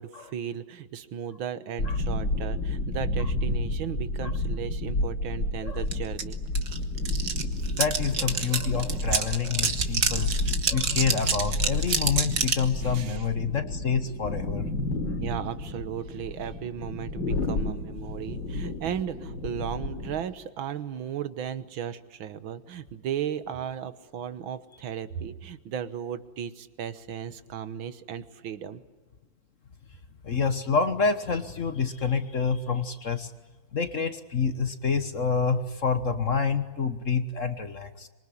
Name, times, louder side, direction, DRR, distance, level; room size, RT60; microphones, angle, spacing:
voice 1, 0.0-6.4 12.8-13.3 15.2-28.8, right 9 dB, 75° right, 13 dB, 1.9 m, -35 dB
sound 1, 1.8-20.2, left 2 dB, 65° left, 3.6 m, -31 dB
sound 2, 5.9-6.0 6.2-12.7, right 6 dB, 50° right, 2.0 m, -28 dB
voice 2, 7.7-10.3 10.7-14.6 30.2-33.3 33.7-38.1, left 5 dB, 45° left, 10 dB, 1.4 m, -27 dB
26.0 x 23.5 x 9.9 m, 1.3 s
omnidirectional pair, 2.2 m